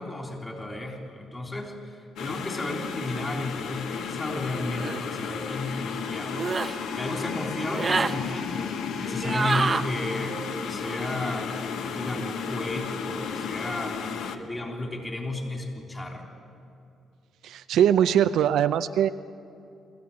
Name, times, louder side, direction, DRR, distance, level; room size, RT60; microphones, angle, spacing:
voice 1, 0.0-8.7 9.0-10.4 10.6-14.0 14.3-16.2, left 2 dB, 20° left, 1 dB, 3.5 m, -33 dB
sound 1, 2.2-14.4, left 6 dB, 80° left, 1.2 m, -33 dB
sound 2, 4.8-5.0 6.3-6.7 7.6-8.1 9.2-9.8, right 4 dB, 35° right, 0.8 m, -26 dB
voice 2, 17.4-19.1, right 9 dB, 80° right, 10 dB, 0.5 m, -21 dB
25.0 x 14.5 x 8.6 m, 2.7 s
cardioid pair, 90°, 0 cm